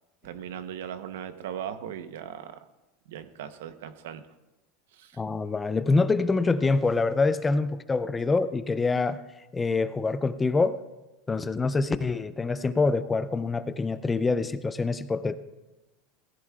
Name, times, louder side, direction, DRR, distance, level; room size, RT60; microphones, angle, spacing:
voice 1, 0.2-2.6 3.1-4.2 4.9-5.2, right 9 dB, 90° right, 11 dB, 0.8 m, -38 dB
voice 2, 5.2-9.2 9.5-10.8 11.3-15.4, left 3 dB, 10° left, 13 dB, 0.4 m, -25 dB
17.5 x 15.0 x 2.4 m, 1.1 s
supercardioid pair, 160°, 0 cm